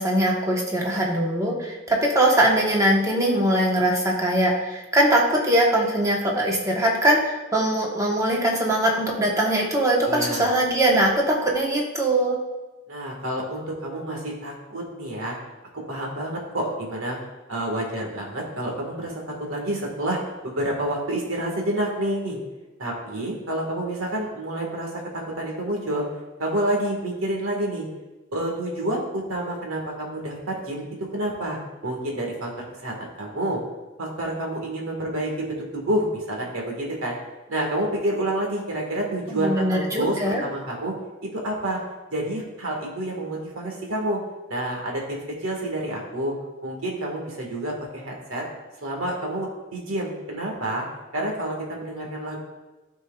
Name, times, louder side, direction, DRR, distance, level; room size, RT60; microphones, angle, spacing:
voice 1, 0.0-12.4 39.3-40.4, right 1 dB, 15° right, -2 dB, 1.1 m, -21 dB
voice 2, 10.0-10.5 12.9-15.4 15.7-17.2 17.5-19.1 19.5-20.2 20.4-22.4 22.8-26.0 26.4-27.9 28.3-30.8 31.1-33.6 34.0-37.2 37.5-40.9 41.2-41.8 42.1-44.2 44.5-46.3 46.6-48.4 48.8-50.8 51.1-52.4, right 1 dB, 80° right, -1 dB, 1.7 m, -28 dB
12.0 x 4.5 x 2.4 m, 1.1 s
head